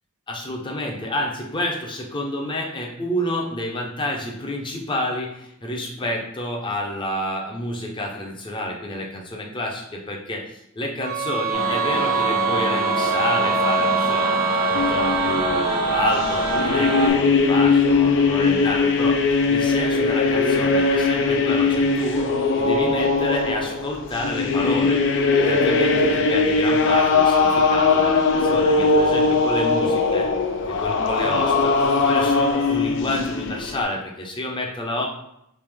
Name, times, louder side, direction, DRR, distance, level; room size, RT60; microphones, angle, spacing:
voice 1, 0.3-19.2 19.5-22.3 22.6-25.0 25.4-30.3 30.7-31.7 32.0-35.1, left 1 dB, 20° left, 0 dB, 0.6 m, -29 dB
sound 1, 11.0-15.8, right 6 dB, 40° right, 0.6 m, -25 dB
sound 2, 11.5-17.1, right 1 dB, 80° right, 0.9 m, -24 dB
sound 3, 14.7-33.8, left 4 dB, 60° left, 0.4 m, -20 dB
3.3 x 3.0 x 3.4 m, 0.79 s
head